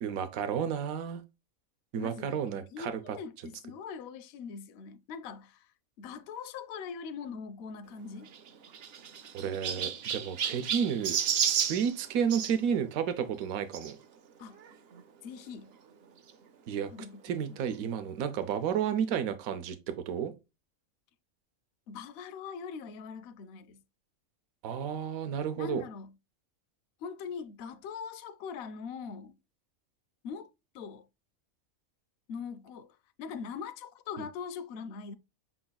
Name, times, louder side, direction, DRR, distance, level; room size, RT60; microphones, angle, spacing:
voice 1, 0.0-1.2 1.9-2.9 9.3-11.2 11.5-14.0 16.7-16.9 17.2-20.3 24.6-25.8, right 8 dB, 80° right, 1.1 m, -32 dB
voice 2, 1.9-8.3 14.4-14.6 15.2-15.7 16.9-17.6 21.9-23.8 25.6-26.1 27.0-29.4 30.2-31.1 32.3-35.1, left 6 dB, 65° left, 0.6 m, -42 dB
Chirp tweet, 8.2-12.5 13.7-13.9 14.6-14.7 14.9-15.0 16.3-16.4, right 8 dB, 60° right, 0.7 m, -32 dB
5.7 x 3.9 x 2.2 m
omnidirectional pair, 1.4 m